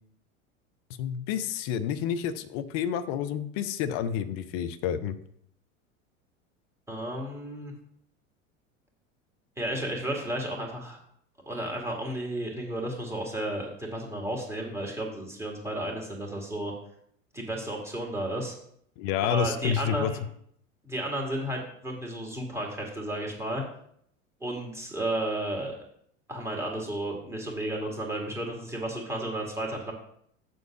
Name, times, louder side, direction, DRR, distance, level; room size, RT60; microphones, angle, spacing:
voice 1, 1.0-5.2 19.0-20.1, left 9 dB, 45° left, 10 dB, 0.7 m, -29 dB
voice 2, 6.9-7.7 9.6-11.0 11.5-16.7 17.3-18.5 19.2-20.2 20.8-23.6 24.4-25.8 26.3-29.9, right 1 dB, 5° right, -1 dB, 2.5 m, -33 dB
7.2 x 3.9 x 6.3 m, 0.68 s
figure-of-eight pair, 80°, 40 cm